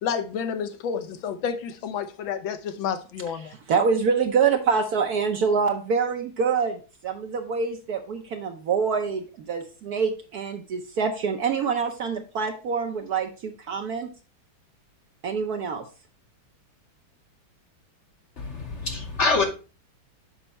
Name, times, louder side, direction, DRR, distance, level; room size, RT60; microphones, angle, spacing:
voice 1, 0.0-3.5, left 7 dB, 75° left, 1.5 m, -30 dB
voice 2, 3.7-14.1 15.2-15.8, right 5 dB, 65° right, 1.0 m, -25 dB
voice 3, 18.4-19.4, left 3 dB, 45° left, 1.0 m, -25 dB
6.8 x 5.3 x 4.1 m
omnidirectional pair, 2.2 m